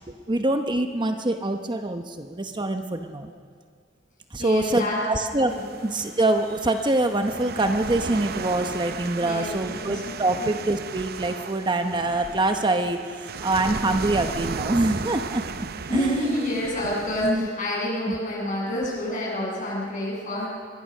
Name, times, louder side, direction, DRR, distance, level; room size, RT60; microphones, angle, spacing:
voice 1, 0.1-3.3 4.3-5.5 5.8-13.0 13.4-15.4 15.9-16.3 17.2-17.5 18.1-18.2, right 2 dB, 25° right, 6 dB, 0.9 m, -24 dB
voice 2, 4.4-5.0 5.4-5.6 9.2-10.5 15.9-20.5, left 1 dB, 45° left, -4 dB, 7.8 m, -28 dB
sound 1, 5.5-17.3, right 5 dB, 55° right, 0.7 m, -35 dB
26.0 x 21.5 x 6.5 m, 2.1 s
head